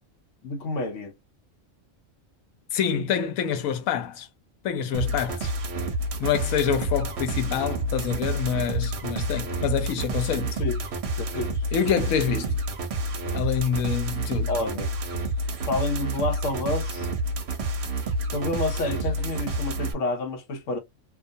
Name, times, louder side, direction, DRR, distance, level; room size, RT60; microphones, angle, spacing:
voice 1, 0.4-1.1 10.6-10.8 11.2-11.6 14.5-14.9 15.5-17.1 18.3-20.8, left 2 dB, 70° left, 1.0 m, -29 dB
voice 2, 2.7-4.3 4.6-5.5 6.2-10.6 11.7-12.6 13.3-14.5, left 8 dB, 90° left, 1.0 m, -26 dB
sound 1, 4.9-19.9, right 1 dB, 60° right, 0.8 m, -29 dB
2.4 x 2.3 x 2.5 m
omnidirectional pair, 1.4 m